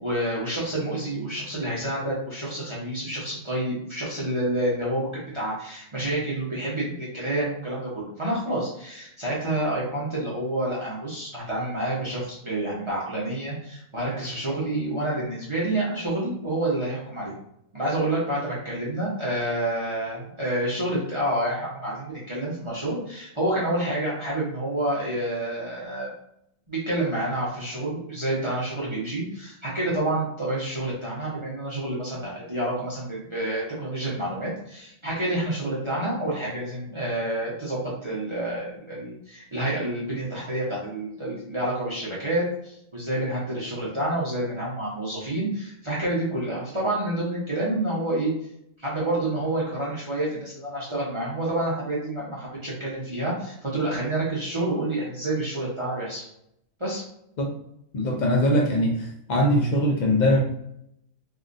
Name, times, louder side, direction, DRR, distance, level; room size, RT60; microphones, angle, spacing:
voice 1, 0.0-17.3 17.7-26.1 26.7-48.3 48.8-56.3 56.8-57.0, right 1 dB, 25° right, -7 dB, 0.7 m, -28 dB
voice 2, 57.9-60.4, equal, 85° left, 0 dB, 0.4 m, -22 dB
3.5 x 2.4 x 2.5 m, 0.75 s
omnidirectional pair, 1.4 m